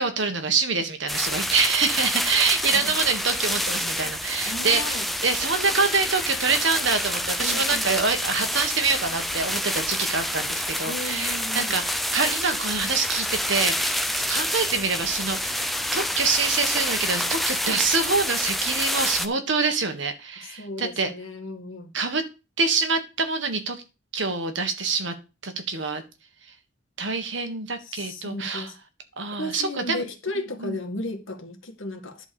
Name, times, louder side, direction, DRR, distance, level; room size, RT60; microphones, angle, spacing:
voice 1, 0.0-15.6 15.9-21.1 21.9-22.2 22.6-23.8 24.1-25.1 25.4-26.0 27.0-28.7 29.2-30.0 30.6-30.8, right 4 dB, 65° right, 1.6 m, -26 dB
sound 1, 1.1-19.3, left 1 dB, ahead, 0.6 m, -28 dB
voice 2, 4.4-5.1 7.4-8.0 10.8-11.8 20.4-21.9 27.8-28.8 29.3-32.3, left 1 dB, 80° left, 2.0 m, -35 dB
11.0 x 4.2 x 7.0 m
head